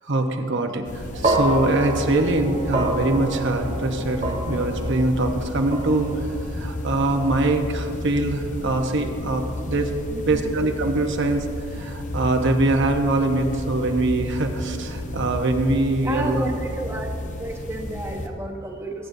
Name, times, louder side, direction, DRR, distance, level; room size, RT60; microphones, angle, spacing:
voice 1, 0.0-9.9 10.3-16.4, right 2 dB, 55° right, 4 dB, 0.9 m, -23 dB
sound 1, 0.8-18.3, left 1 dB, 35° left, 0.8 m, -32 dB
sound 2, 1.2-9.6, right 1 dB, 30° right, 1.1 m, -29 dB
voice 2, 10.1-10.6 16.0-17.1 17.4-19.1, right 1 dB, 10° right, 0 dB, 0.7 m, -31 dB
22.0 x 9.4 x 2.7 m, 2.6 s
head